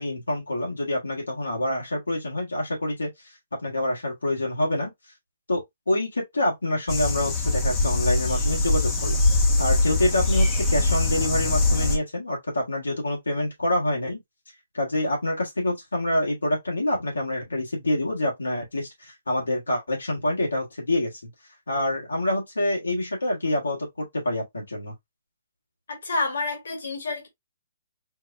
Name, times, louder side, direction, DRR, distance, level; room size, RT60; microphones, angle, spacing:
voice 1, 0.0-3.1 3.6-4.9 5.5-14.2 14.7-21.2 21.7-24.9, left 1 dB, 90° left, 1.6 m, -26 dB
sound 1, 6.9-12.0, left 2 dB, 20° left, 0.9 m, -22 dB
voice 2, 25.9-27.3, left 3 dB, 70° left, 1.7 m, -29 dB
4.5 x 2.3 x 2.5 m
hypercardioid pair, 140°, 0 cm